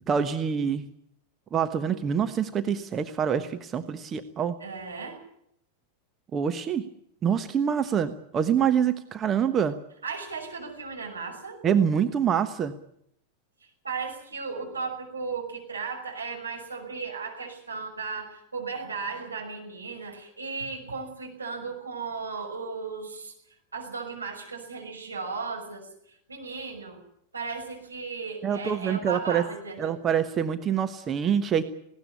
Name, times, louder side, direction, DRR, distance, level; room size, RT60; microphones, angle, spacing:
voice 1, 0.1-0.8 1.5-4.5 6.3-6.9 7.2-9.8 11.6-12.7 28.4-29.4 29.8-31.7, right 8 dB, 25° right, 9 dB, 1.2 m, -25 dB
voice 2, 4.6-5.2 10.0-11.6 13.8-23.3 23.7-27.0 27.3-29.9, right 4 dB, 80° right, 2 dB, 5.9 m, -36 dB
19.5 x 17.5 x 9.7 m, 0.73 s
figure-of-eight pair, 90°, 0 cm